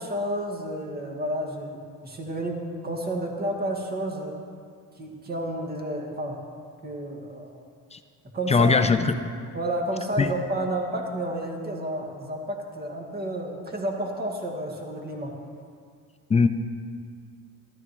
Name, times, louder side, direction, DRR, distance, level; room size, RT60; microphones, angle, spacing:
voice 1, 0.0-4.3 5.0-6.4 6.8-7.6 8.3-8.8 9.5-15.3, right 1 dB, 25° right, 1 dB, 1.9 m, -31 dB
voice 2, 8.5-9.1 10.2-10.3 16.3-16.5, left 4 dB, 20° left, 9 dB, 0.5 m, -19 dB
13.0 x 12.5 x 3.1 m, 2.1 s
supercardioid pair, 100°, 37 cm